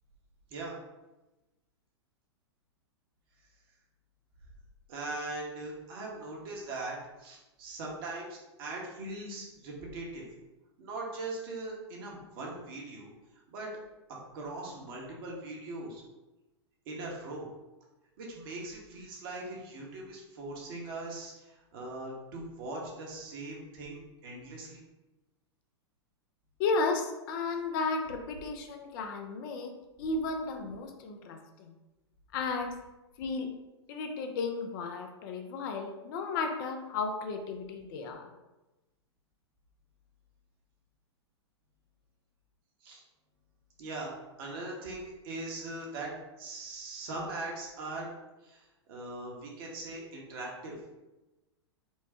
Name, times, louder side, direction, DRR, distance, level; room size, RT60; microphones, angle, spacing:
voice 1, 4.9-10.3 10.8-13.1 13.5-13.7 14.3-16.0 16.9-17.5 18.2-24.8 42.8-43.0 43.8-46.1 46.4-48.1 48.4-50.8, right 2 dB, 55° right, -2 dB, 1.1 m, -40 dB
voice 2, 26.6-29.7 30.0-31.7 32.3-32.7 33.2-33.5 33.9-38.3, left 4 dB, 50° left, 4 dB, 0.5 m, -34 dB
4.5 x 2.2 x 2.8 m, 1.1 s
hypercardioid pair, 105°, 15 cm